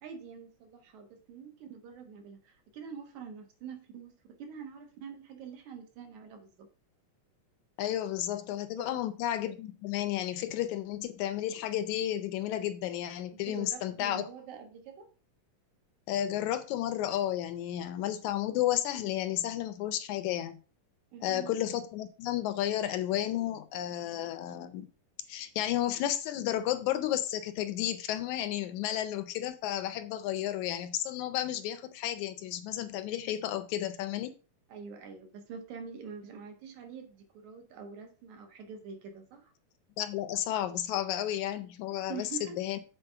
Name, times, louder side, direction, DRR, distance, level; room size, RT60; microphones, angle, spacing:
voice 1, 0.0-6.7 8.8-9.0 13.3-15.1 21.1-21.5 34.7-39.5 42.1-42.6, right 6 dB, 65° right, 2.6 m, -45 dB
voice 2, 7.8-14.3 16.1-20.6 21.2-24.9 25.3-34.3 40.0-42.8, left 12 dB, 75° left, 1.9 m, -32 dB
7.8 x 4.2 x 5.6 m
omnidirectional pair, 3.7 m